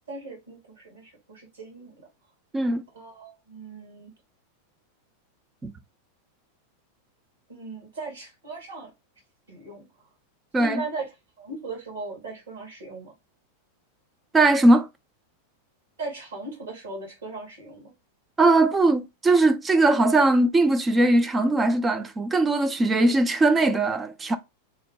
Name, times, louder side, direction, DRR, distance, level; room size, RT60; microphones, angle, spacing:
voice 1, 0.1-2.1 2.9-4.1 7.5-8.9 9.5-9.9 10.6-11.1 11.4-13.1 16.0-17.9, right 3 dB, 65° right, 1.5 m, -38 dB
voice 2, 2.5-2.8 5.6-5.7 10.5-10.8 14.3-14.9 18.4-24.4, right 2 dB, 15° right, 0.4 m, -20 dB
2.8 x 2.1 x 2.7 m
figure-of-eight pair, 90°, 0 cm